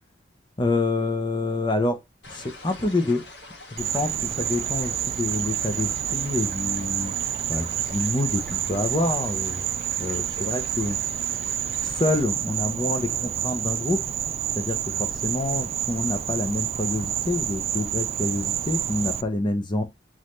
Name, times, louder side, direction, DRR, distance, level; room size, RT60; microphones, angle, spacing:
voice 1, 0.6-2.0 2.3-3.2 3.7-7.2 7.5-9.6 10.0-11.0 11.8-14.0 14.6-19.8, left 2 dB, 25° left, 0.9 m, -27 dB
Relaxing river stream running water seamless loop, 2.2-12.2, left 2 dB, 70° left, 1.7 m, -45 dB
Insect, 3.8-19.2, right 10 dB, 35° right, 0.3 m, -28 dB
4.0 x 3.2 x 3.8 m
head